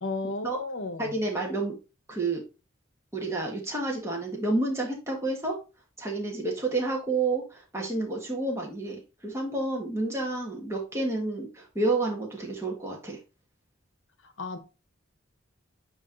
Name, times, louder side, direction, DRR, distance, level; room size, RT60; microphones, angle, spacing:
voice 1, 0.0-1.1 14.2-14.6, left 3 dB, 70° left, 1.1 m, -33 dB
voice 2, 1.0-1.8 2.1-2.4 3.1-5.6 6.0-13.2, right 2 dB, 15° right, 1.7 m, -30 dB
8.6 x 3.1 x 3.9 m
head